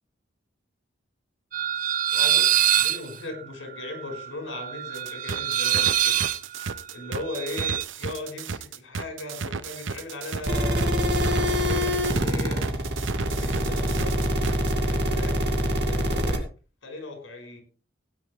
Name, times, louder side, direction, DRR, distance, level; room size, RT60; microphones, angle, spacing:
sound 1, 1.5-7.8, right 11 dB, 45° right, 0.5 m, -25 dB
voice 1, 2.1-6.2 6.9-12.6 13.2-14.2 14.8-16.4 16.8-17.6, left 2 dB, 85° left, 4 dB, 5.3 m, -38 dB
sound 2, 4.9-14.7, right 5 dB, 80° right, 0.8 m, -34 dB
sound 3, 10.4-16.4, equal, 65° right, 2.5 m, -25 dB
17.0 x 9.6 x 3.4 m, 0.35 s
head